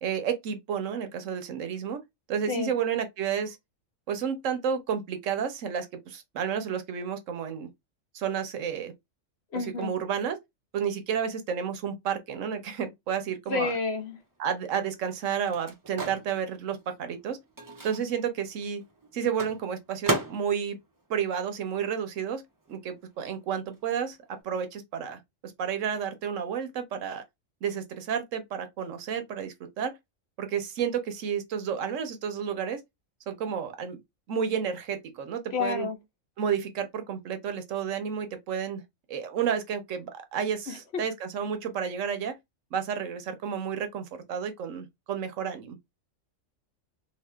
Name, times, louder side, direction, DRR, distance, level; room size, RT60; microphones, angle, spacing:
voice 1, 0.0-2.0 2.3-3.6 4.1-7.7 8.1-8.9 9.5-10.4 10.7-13.7 14.4-17.4 17.8-18.8 19.1-20.8 21.1-22.4 22.7-24.2 24.4-25.2 25.6-27.2 27.6-29.9 30.4-32.8 33.3-34.0 34.3-35.9 36.4-38.8 39.1-42.4 42.7-45.8, right 7 dB, 75° right, 1.1 m, -31 dB
voice 2, 9.5-9.9 13.5-14.1 35.5-36.0, left 4 dB, 55° left, 1.0 m, -29 dB
Microwave oven, 14.1-22.2 22.5-24.4, right 2 dB, 25° right, 0.4 m, -37 dB
2.8 x 2.8 x 3.3 m
omnidirectional pair, 1.4 m